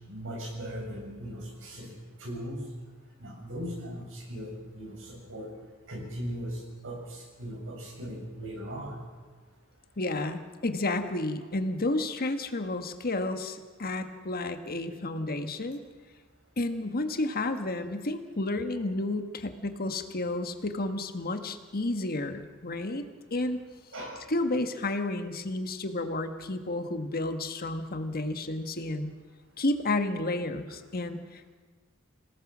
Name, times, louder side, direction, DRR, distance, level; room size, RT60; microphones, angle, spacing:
voice 1, 0.0-2.6 3.2-5.5 5.9-9.0 23.9-24.2, equal, 65° right, 0 dB, 7.4 m, -38 dB
voice 2, 10.0-15.8 16.6-23.0 23.3-23.6 24.3-29.1 29.6-31.5, left 2 dB, 45° left, 7 dB, 1.5 m, -31 dB
27.0 x 18.5 x 6.2 m, 1.4 s
head